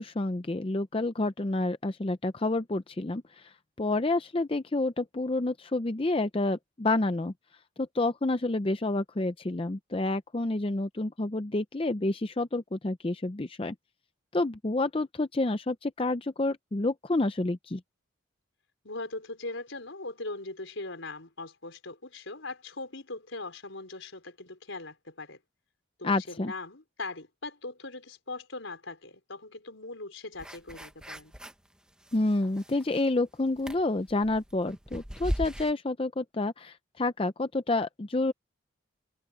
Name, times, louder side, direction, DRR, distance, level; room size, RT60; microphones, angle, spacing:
voice 1, 0.0-7.3 7.8-13.7 14.3-17.8 26.0-26.5 32.1-38.3, left 2 dB, 25° left, 0.5 m, -29 dB
voice 2, 18.8-25.4 26.0-31.3, left 2 dB, 75° left, 4.6 m, -40 dB
sound 1, 30.4-31.7 32.0-33.2 33.6-35.7, equal, 5° right, 1.1 m, -37 dB
head